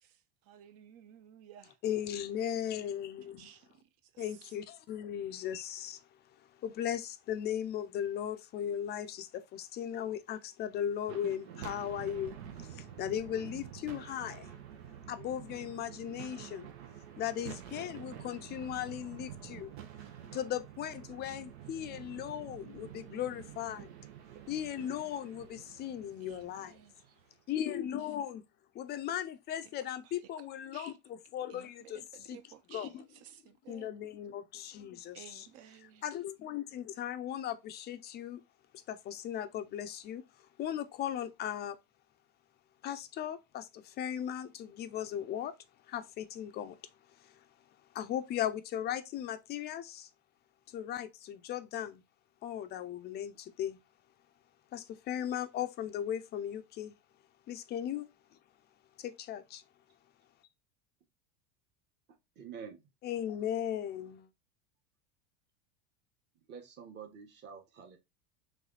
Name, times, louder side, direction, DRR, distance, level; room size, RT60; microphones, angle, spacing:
voice 1, 0.0-1.8 3.4-4.5 26.2-27.2 29.6-30.1 30.7-31.0 31.5-34.0 35.1-36.0, right 10 dB, 50° right, 0.7 m, -56 dB
voice 2, 1.8-3.5 4.2-6.0 6.6-14.5 15.1-16.7 17.2-19.7 20.3-23.9 24.5-26.8 27.5-28.4 28.7-32.0 32.3-32.4 32.7-33.0 33.7-35.5 36.0-38.4 38.9-40.2 40.6-41.8 42.8-45.5 45.9-46.8 47.2-47.3 47.9-50.1 50.7-52.0 52.4-53.8 54.7-57.0 57.5-58.1 59.0-59.6 63.0-64.3, left 10 dB, 30° left, 0.4 m, -37 dB
sound 1, 11.0-27.4, right 9 dB, 80° right, 0.9 m, -48 dB
voice 3, 62.1-62.8 66.5-68.0, right 7 dB, 35° right, 1.1 m, -48 dB
3.3 x 3.2 x 3.8 m
supercardioid pair, 130°, 32 cm